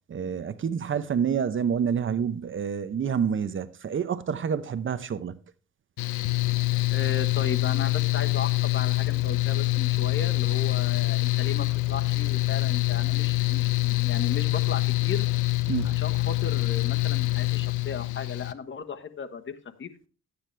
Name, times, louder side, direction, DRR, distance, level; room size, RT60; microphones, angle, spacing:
voice 1, 0.1-5.4 15.7-16.0, right 7 dB, 40° right, 0.8 m, -28 dB
Mechanical fan, 6.0-18.5, left 20 dB, 85° left, 0.8 m, -25 dB
voice 2, 6.9-15.3 15.8-19.5 19.8-19.9, left 6 dB, 40° left, 1.3 m, -35 dB
11.5 x 9.5 x 3.3 m
cardioid pair, 90°, 30 cm